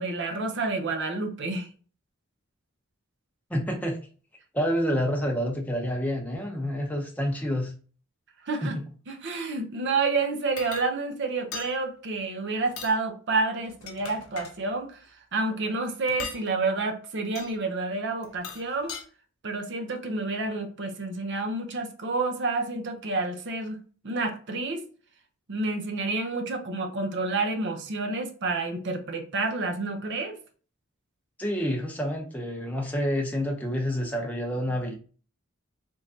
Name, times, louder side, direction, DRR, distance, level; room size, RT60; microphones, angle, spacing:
voice 1, 0.0-1.7 8.4-8.8 9.1-15.0 15.3-19.0 19.4-23.8 24.0-24.9 25.5-30.4, right 3 dB, 55° right, 5 dB, 0.6 m, -29 dB
voice 2, 3.5-4.0 4.5-7.7 8.6-8.7 31.4-35.0, equal, 5° left, 0 dB, 0.7 m, -28 dB
sound 1, 10.6-10.9 11.5-11.7 12.7-13.0 13.7-14.6 16.1-16.4 17.4-17.5 18.2-19.0, left 6 dB, 75° left, 0.6 m, -39 dB
3.5 x 3.1 x 2.7 m, 0.39 s
head